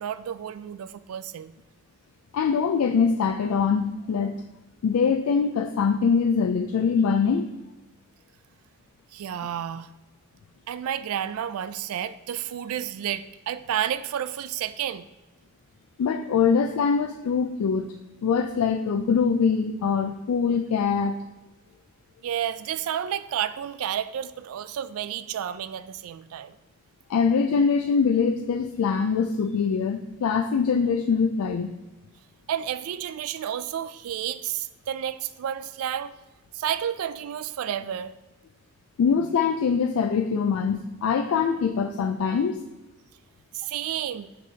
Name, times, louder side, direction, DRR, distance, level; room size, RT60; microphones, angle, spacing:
voice 1, 0.0-1.5 9.1-9.9 10.7-15.0 22.2-26.5 32.5-36.1 36.5-38.1 43.5-44.3, right 10 dB, 80° right, 0.3 m, -31 dB
voice 2, 2.3-4.3 4.8-7.5 16.0-17.9 18.2-21.2 27.1-31.7 39.0-42.6, left 6 dB, 85° left, 0.3 m, -23 dB
6.1 x 5.9 x 2.8 m
head